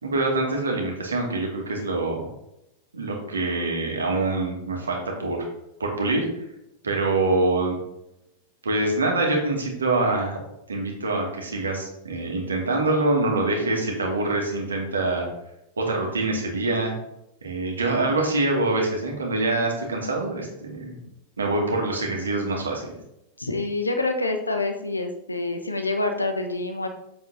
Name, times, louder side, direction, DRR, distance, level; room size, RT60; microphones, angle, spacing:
voice 1, 0.0-2.3 2.9-5.4 5.8-6.3 6.8-7.8 8.6-10.4 10.7-15.3 15.8-16.9 17.4-20.9 21.4-22.9, right 2 dB, 75° right, 0 dB, 2.4 m, -25 dB
voice 2, 23.4-26.9, left 2 dB, 80° left, 6 dB, 1.2 m, -27 dB
8.1 x 6.8 x 4.2 m, 0.83 s
figure-of-eight pair, 90°, 0 cm